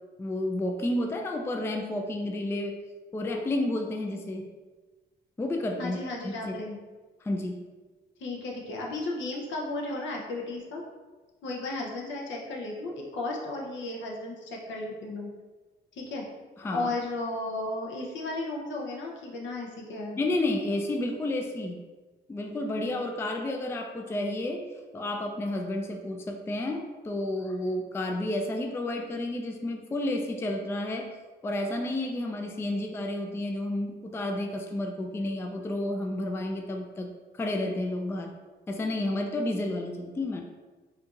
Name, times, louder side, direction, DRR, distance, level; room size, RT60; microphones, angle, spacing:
voice 1, 0.2-2.8 3.1-4.5 5.4-6.0 6.2-6.6 7.2-7.6 16.6-16.9 20.2-21.8 22.3-24.6 24.9-31.1 31.4-37.1 37.3-38.3 38.7-40.4, left 1 dB, 10° left, 3 dB, 0.3 m, -31 dB
voice 2, 5.8-6.8 8.2-10.8 11.4-15.3 15.9-16.3 16.7-20.2, left 2 dB, 70° left, -1 dB, 0.7 m, -34 dB
4.3 x 2.6 x 2.4 m, 1.3 s
cardioid pair, 90°, 20 cm